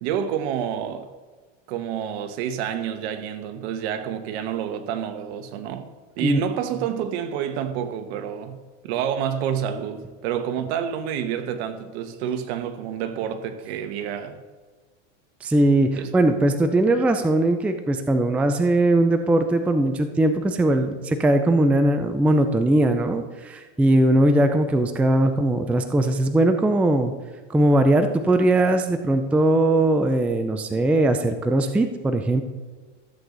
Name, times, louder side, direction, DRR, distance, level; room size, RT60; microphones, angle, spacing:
voice 1, 0.0-1.1 1.7-5.9 6.2-14.4 16.0-16.1, right 9 dB, 60° right, 1.2 m, -28 dB
voice 2, 15.4-27.1 27.5-32.4, right 1 dB, 5° right, 0.4 m, -20 dB
14.0 x 8.0 x 3.9 m
supercardioid pair, 130°, 35 cm